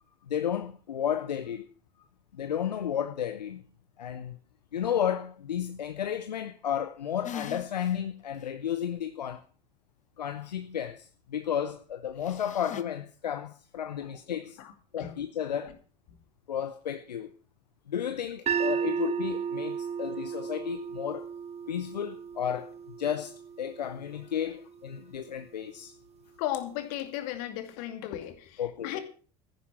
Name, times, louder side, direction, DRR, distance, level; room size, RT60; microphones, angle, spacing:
voice 1, 0.3-1.7 2.3-3.6 4.0-4.4 4.7-9.4 10.2-14.6 14.9-15.7 16.5-17.3 17.9-21.3 21.7-22.7 23.0-25.9 28.6-29.0, left 9 dB, 85° left, 0.7 m, -33 dB
sound 1, 7.2-8.0 8.4-8.5 12.2-12.8, left 9 dB, 35° left, 1.1 m, -41 dB
voice 2, 14.6-15.1 15.6-15.7 18.8-18.9 24.5-24.6 26.4-29.0, left 12 dB, 65° left, 2.3 m, -36 dB
sound 2, 18.5-24.6, right 7 dB, 30° right, 0.7 m, -34 dB
14.5 x 10.5 x 6.2 m
figure-of-eight pair, 65°, 21 cm